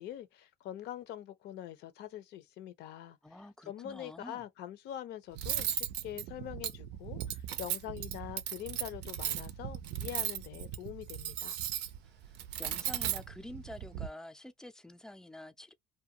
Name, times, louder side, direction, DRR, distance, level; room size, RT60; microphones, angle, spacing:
voice 1, 0.0-3.2 3.6-11.6, left 11 dB, 80° left, 0.6 m, -44 dB
voice 2, 3.2-4.4 12.0-15.7, left 1 dB, 5° left, 0.4 m, -48 dB
Cutlery silverware, 5.4-14.1, right 11 dB, 85° right, 0.5 m, -37 dB
2.4 x 2.2 x 2.8 m
cardioid pair, 110°, 17 cm